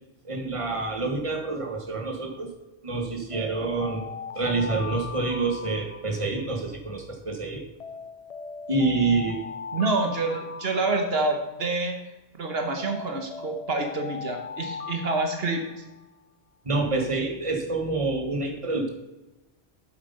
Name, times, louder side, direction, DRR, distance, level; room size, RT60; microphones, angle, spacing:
voice 1, 0.2-2.5 2.8-4.1 4.3-7.6 8.7-9.4 16.6-18.9, right 3 dB, 30° right, 2 dB, 1.4 m, -27 dB
Alarm, 3.3-6.6 7.8-11.6 12.8-16.1, left 5 dB, 45° left, 0.5 m, -39 dB
voice 2, 9.7-12.0 12.4-15.7, right 3 dB, 70° right, 4 dB, 1.2 m, -27 dB
8.1 x 7.4 x 5.3 m, 1.0 s
omnidirectional pair, 1.1 m